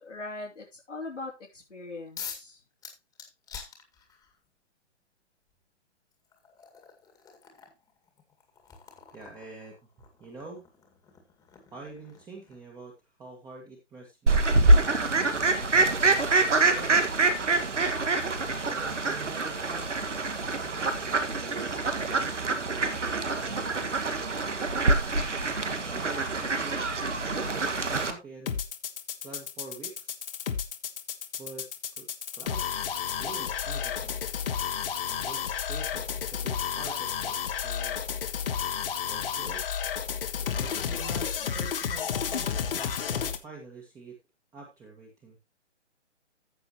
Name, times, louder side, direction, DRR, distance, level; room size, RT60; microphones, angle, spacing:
voice 1, 0.0-2.6, left 2 dB, 85° left, -5 dB, 3.1 m, -40 dB
beer can open, 2.2-2.5 2.8-4.4 5.5-5.6 6.1-12.8, left 6 dB, 10° left, 2.0 m, -47 dB
voice 2, 9.1-9.8 10.2-10.6 11.7-12.9 13.2-17.0 18.7-20.3 21.1-24.3 25.2-26.8 27.2-28.6 29.2-30.2 31.4-31.7 32.0-32.1 32.3-34.2 35.0-38.1 39.1-39.6 40.4-44.2 44.5-45.4, right 3 dB, 10° right, -1 dB, 1.7 m, -46 dB
Fowl, 14.3-28.1, right 3 dB, 80° right, 1.8 m, -25 dB
sound 1, 28.5-43.4, left 7 dB, 50° left, 1.7 m, -32 dB
14.5 x 6.9 x 3.0 m, 0.24 s
figure-of-eight pair, 140°, 36 cm